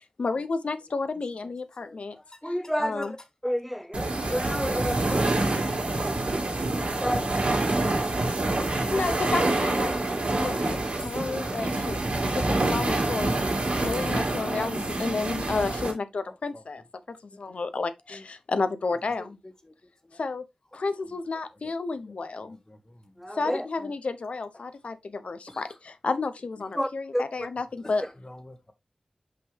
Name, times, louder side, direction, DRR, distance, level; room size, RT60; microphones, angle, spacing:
voice 1, 0.2-2.2 2.8-3.1 8.9-9.9 10.4-12.0 12.4-13.3 13.8-19.4 20.2-20.4 20.7-22.6 23.4-28.0, left 3 dB, 85° left, 0.7 m, -31 dB
voice 2, 1.8-2.4 11.0-11.1 16.3-16.6 17.3-17.6 18.1-18.2 19.2-19.7 20.1-20.2 21.5-21.7 22.0-23.0 23.8-23.9 24.5-24.7 25.5-25.8 27.8-28.7, left 1 dB, 30° left, 1.2 m, -48 dB
voice 3, 2.4-3.2 3.4-5.3 7.0-7.2 23.2-23.7 26.7-27.5, equal, 5° left, 0.8 m, -30 dB
sound 1, 3.9-15.9, right 2 dB, 75° right, 2.4 m, -27 dB
5.6 x 5.4 x 3.3 m
wide cardioid pair, 65°, 2 cm